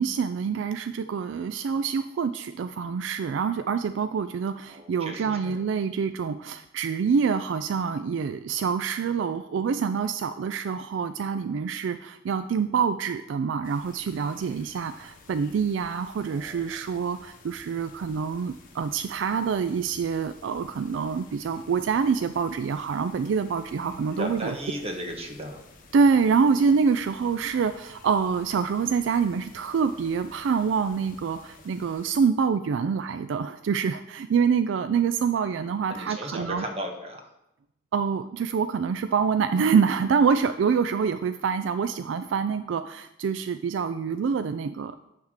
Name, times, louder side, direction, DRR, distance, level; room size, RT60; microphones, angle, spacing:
voice 1, 0.0-24.5 25.9-36.6 37.9-45.0, right 6 dB, 70° right, 10 dB, 0.3 m, -26 dB
voice 2, 4.7-5.6 16.2-16.8 23.7-25.6 35.9-37.2, equal, 35° right, 2 dB, 1.4 m, -36 dB
sound 1, 13.6-32.1, left 3 dB, 45° left, 1.1 m, -52 dB
9.4 x 3.6 x 6.5 m, 0.86 s
head